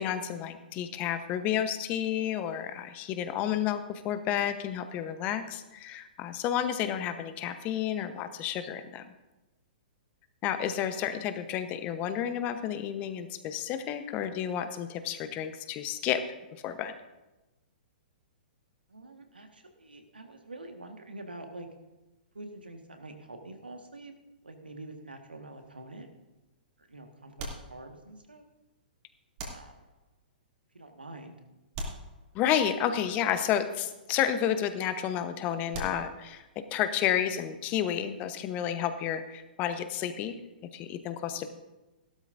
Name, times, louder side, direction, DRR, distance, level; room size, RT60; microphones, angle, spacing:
voice 1, 0.0-9.1 10.4-16.2 16.5-16.9 32.3-36.4 36.7-40.3 40.7-41.5, left 10 dB, 30° left, 10 dB, 0.9 m, -31 dB
voice 2, 18.9-21.7 22.3-24.1 24.4-26.1 26.8-28.4 29.5-29.7 30.7-31.4, right 2 dB, 80° right, 5 dB, 1.6 m, -46 dB
sound 1, 25.6-26.1 27.4-28.3 29.4-30.2 31.7-32.8 35.7-36.6, right 1 dB, 40° right, 2.7 m, -42 dB
16.5 x 12.5 x 2.6 m, 1.1 s
figure-of-eight pair, 115°, 5 cm